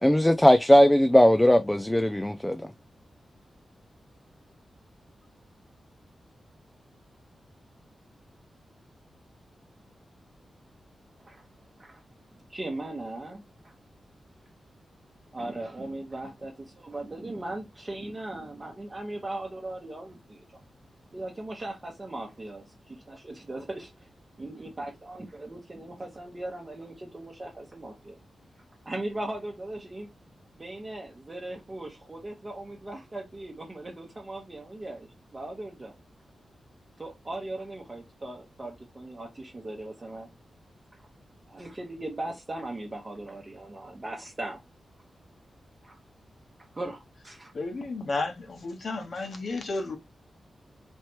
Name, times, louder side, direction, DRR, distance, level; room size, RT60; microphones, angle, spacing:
voice 1, 0.0-2.6, equal, 5° left, 0.3 m, -19 dB
voice 2, 12.5-13.8 15.3-20.4 21.1-24.0 24.4-28.2 28.8-30.1 30.6-35.9 37.0-40.3 41.5-44.6 45.8-46.0 46.7-47.5, right 2 dB, 25° right, 0.9 m, -38 dB
voice 3, 47.5-50.0, left 3 dB, 50° left, 1.1 m, -32 dB
4.4 x 3.2 x 2.9 m
wide cardioid pair, 155°, 0 cm